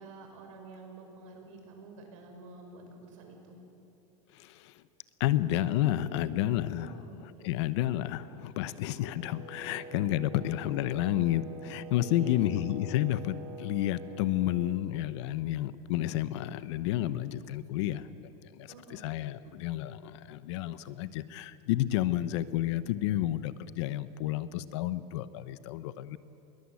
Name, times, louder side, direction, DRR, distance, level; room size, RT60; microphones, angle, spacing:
voice 1, 0.0-3.6 6.7-7.6 10.5-10.8 12.0-12.4 18.7-19.0, right 3 dB, 70° right, 2 dB, 5.7 m, -49 dB
voice 2, 4.3-4.8 5.2-26.2, left 13 dB, 55° left, 15 dB, 0.9 m, -31 dB
Wind instrument woodwind instrument, 9.1-14.8, right 2 dB, 40° right, 4.4 m, -46 dB
21.0 x 19.5 x 8.5 m, 2.9 s
supercardioid pair, 165°, 17 cm